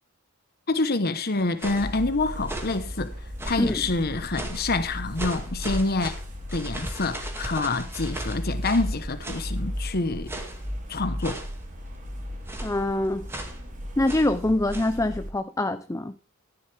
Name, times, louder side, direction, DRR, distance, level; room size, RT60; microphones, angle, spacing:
voice 1, 0.7-3.1 3.5-6.1 6.5-10.3 10.9-11.4, left 3 dB, 45° left, 1.1 m, -27 dB
sound 1, 1.3-1.9 2.4-2.8 3.4-3.8 4.3-4.7 5.2-8.9 9.2-9.5 10.3-10.7 11.2-11.6 12.5-12.8 13.3-13.6 14.1-14.3 14.7-15.0, right 1 dB, 10° right, 2.3 m, -37 dB
sound 2, 1.7-15.3, equal, 35° right, 3.3 m, -36 dB
voice 2, 12.6-13.3 14.0-16.2, left 1 dB, 15° left, 0.5 m, -25 dB
14.5 x 11.0 x 3.5 m
head